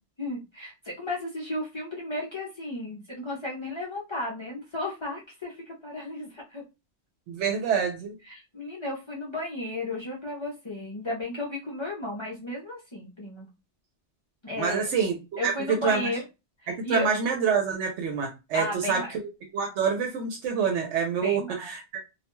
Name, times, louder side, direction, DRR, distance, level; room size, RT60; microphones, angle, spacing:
voice 1, 0.2-6.6 8.2-13.5 14.4-14.9 15.4-16.2 16.6-17.1 18.5-19.1 21.2-21.7, left 1 dB, 35° left, -4 dB, 0.5 m, -34 dB
voice 2, 7.3-8.1 14.6-15.2 15.4-15.5 15.8-16.0 16.7-19.0 19.5-21.8, right 6 dB, 85° right, 2 dB, 0.9 m, -26 dB
2.3 x 2.1 x 2.9 m, 0.27 s
omnidirectional pair, 1.2 m